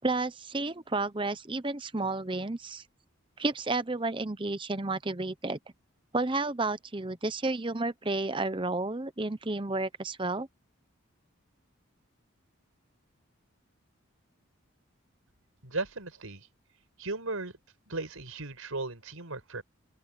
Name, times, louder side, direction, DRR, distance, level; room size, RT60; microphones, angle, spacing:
voice 1, 0.0-2.8 3.4-5.6 6.1-10.5, right 2 dB, 25° right, 0.8 m, -31 dB
voice 2, 15.6-16.5 17.0-17.6 17.9-19.6, right 3 dB, 85° right, 5.2 m, -36 dB
open air
head